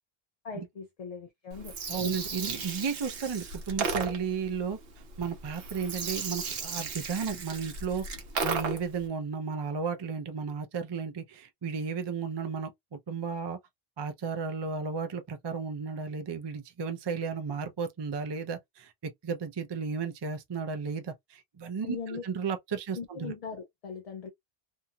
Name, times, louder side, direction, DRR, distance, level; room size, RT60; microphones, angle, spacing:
voice 1, 0.4-2.0 21.8-22.3 22.7-24.3, left 5 dB, 50° left, 0.5 m, -40 dB
Gurgling, 1.5-9.0, right 4 dB, 75° right, 1.0 m, -35 dB
voice 2, 1.9-4.8 5.2-8.0 8.4-13.6 14.0-23.3, right 5 dB, 40° right, 0.4 m, -34 dB
2.8 x 2.6 x 2.3 m
omnidirectional pair, 1.0 m